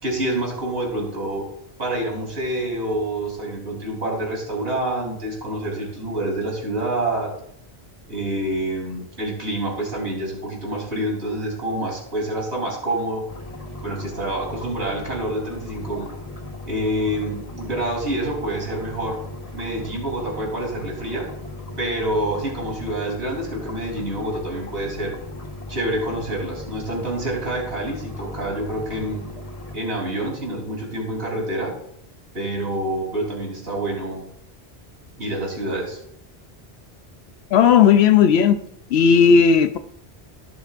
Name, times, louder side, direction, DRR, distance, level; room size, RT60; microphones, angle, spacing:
voice 1, 0.0-1.5 1.8-7.3 8.1-13.3 13.8-16.1 16.7-19.2 19.5-21.3 21.8-25.2 25.7-29.3 29.7-31.8 32.3-34.3 35.2-36.0, right 1 dB, 85° right, -2 dB, 3.8 m, -27 dB
sound 1, 13.3-29.8, left 2 dB, 35° left, 1.3 m, -37 dB
voice 2, 37.5-38.6 38.9-39.8, left 7 dB, 80° left, 10 dB, 0.8 m, -14 dB
16.5 x 7.9 x 2.5 m, 0.70 s
omnidirectional pair, 1.1 m